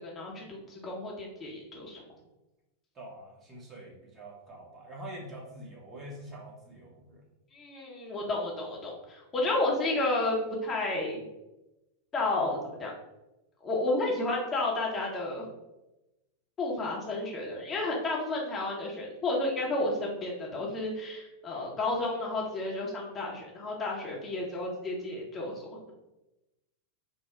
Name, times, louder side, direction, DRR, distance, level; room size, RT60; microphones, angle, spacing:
voice 1, 0.0-2.0 7.5-11.2 12.1-12.9 13.6-15.4 16.6-25.9, left 2 dB, 25° left, -2 dB, 0.9 m, -32 dB
voice 2, 2.9-7.2, right 1 dB, 25° right, -3 dB, 1.1 m, -45 dB
3.7 x 2.1 x 4.4 m, 0.98 s
figure-of-eight pair, 90°, 0 cm